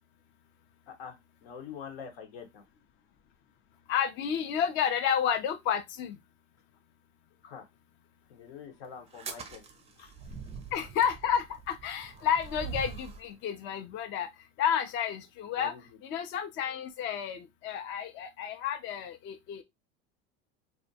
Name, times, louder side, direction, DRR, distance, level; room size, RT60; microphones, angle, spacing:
voice 1, 0.9-1.2 1.4-2.6 7.4-7.7 8.3-9.6 10.0-10.1 15.5-16.0, left 7 dB, 85° left, 0.9 m, -45 dB
voice 2, 3.9-6.2 10.7-14.3 14.6-15.7 16.1-19.6, left 8 dB, 40° left, 0.4 m, -31 dB
sound 1, 9.1-13.3, right 6 dB, 20° right, 0.4 m, -43 dB
2.5 x 2.1 x 2.6 m
supercardioid pair, 105°, 29 cm